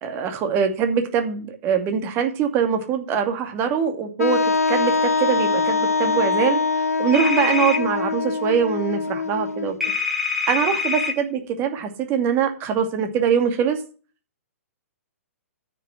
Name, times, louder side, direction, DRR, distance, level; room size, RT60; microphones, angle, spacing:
voice 1, 0.0-4.4 4.7-6.6 7.0-9.7 10.5-13.8, right 7 dB, 30° right, 6 dB, 2.5 m, -23 dB
Wind instrument woodwind instrument, 4.2-10.0, left 4 dB, 80° left, 0.7 m, -23 dB
sound 1, 7.1-7.8 9.8-11.1, left 5 dB, 5° right, 3.7 m, -24 dB
9.5 x 6.6 x 7.6 m, 0.36 s
figure-of-eight pair, 115°, 8 cm